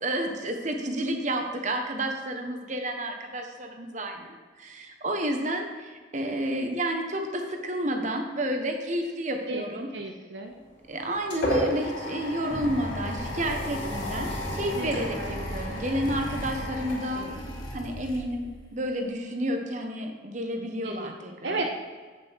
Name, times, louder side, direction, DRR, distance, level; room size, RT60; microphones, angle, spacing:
voice 1, 0.0-9.9 10.9-17.3 17.7-21.7, right 1 dB, 40° right, 4 dB, 1.0 m, -31 dB
voice 2, 9.9-10.5 14.7-14.9 15.2-15.3 20.8-21.1 21.4-21.7, right 2 dB, 65° right, 3 dB, 0.7 m, -32 dB
sound 1, 10.6-18.0, equal, 65° left, 3.1 m, -33 dB
sound 2, 12.5-18.6, equal, 20° left, 1.5 m, -38 dB
8.4 x 7.0 x 4.6 m, 1.5 s
head